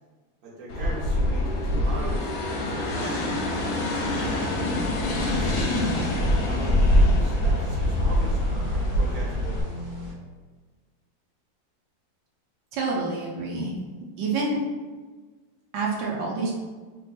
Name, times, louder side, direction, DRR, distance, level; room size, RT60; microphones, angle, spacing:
voice 1, 0.4-3.9 5.1-5.7 6.4-9.6, right 2 dB, 60° right, -4 dB, 1.3 m, -40 dB
sound 1, 0.7-9.6, left 1 dB, 65° left, 0.8 m, -24 dB
sound 2, 4.6-10.1, left 3 dB, 20° right, 0.4 m, -37 dB
voice 2, 12.7-13.7 14.2-14.6 15.7-16.5, right 3 dB, 85° right, -3 dB, 1.3 m, -27 dB
3.4 x 2.2 x 3.9 m, 1.4 s
omnidirectional pair, 2.0 m